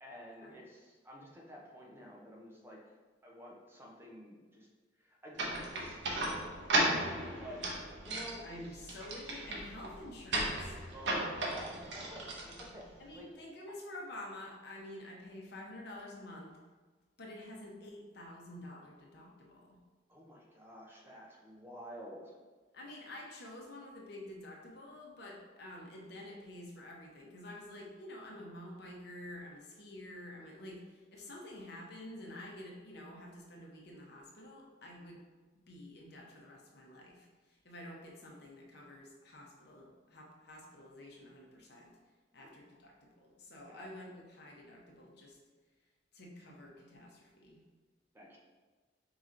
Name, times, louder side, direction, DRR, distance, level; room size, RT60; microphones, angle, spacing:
voice 1, 0.0-2.8 3.2-4.7 5.0-7.1 7.4-7.6 8.0-8.6 10.9-12.9 13.1-13.3 20.1-22.3 43.7-43.9 48.1-48.4, equal, 15° right, -3 dB, 0.7 m, -51 dB
sound 1, 5.4-13.2, right 1 dB, 70° right, 0.9 m, -36 dB
voice 2, 8.4-10.8 13.0-16.6 17.2-19.8 22.7-35.3 35.7-42.0 42.3-45.4 46.1-47.6, left 1 dB, 60° left, -2 dB, 0.9 m, -49 dB
4.8 x 2.9 x 3.8 m, 1.3 s
head